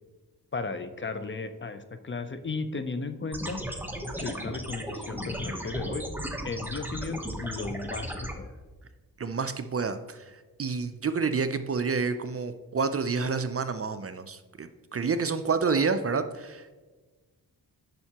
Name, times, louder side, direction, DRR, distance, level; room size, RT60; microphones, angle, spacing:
voice 1, 0.5-3.6 4.2-6.1 6.4-8.6, left 4 dB, 30° left, 10 dB, 0.5 m, -35 dB
sound 1, 3.3-8.3, equal, 5° right, 0.9 m, -35 dB
voice 2, 9.2-16.7, right 5 dB, 40° right, 10 dB, 0.4 m, -29 dB
8.9 x 5.7 x 2.9 m, 1.3 s
cardioid pair, 60°, 39 cm